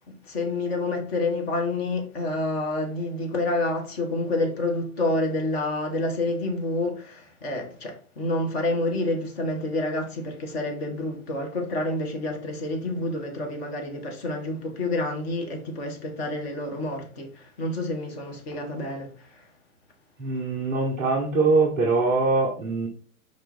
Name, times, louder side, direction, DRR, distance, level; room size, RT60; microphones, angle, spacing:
voice 1, 0.2-19.5, left 2 dB, 45° left, 2.0 m, -28 dB
voice 2, 20.2-22.9, right 3 dB, 10° right, 0.4 m, -23 dB
5.2 x 4.5 x 4.4 m
figure-of-eight pair, 120°, 44 cm